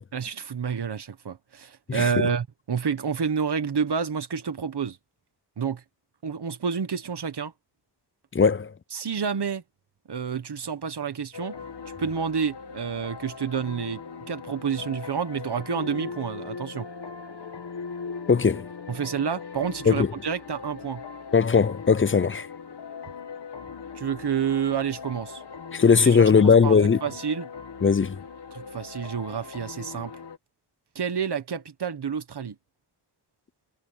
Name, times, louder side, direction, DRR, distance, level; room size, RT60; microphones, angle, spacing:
voice 1, 0.1-5.0 5.6-5.8 6.2-7.5 8.9-9.6 10.1-11.5 12.0-16.9 18.9-21.0 23.9-25.4 26.0-27.5 28.5-30.1 30.9-32.6, right 6 dB, 80° right, 1.4 m, -29 dB
voice 2, 8.3-8.7 18.3-18.7 19.9-20.1 21.3-22.5 25.7-27.0 27.8-28.2, left 5 dB, 30° left, 0.5 m, -19 dB
sound 1, 11.3-30.4, left 5 dB, 90° left, 1.8 m, -40 dB
cardioid pair, 40°, 39 cm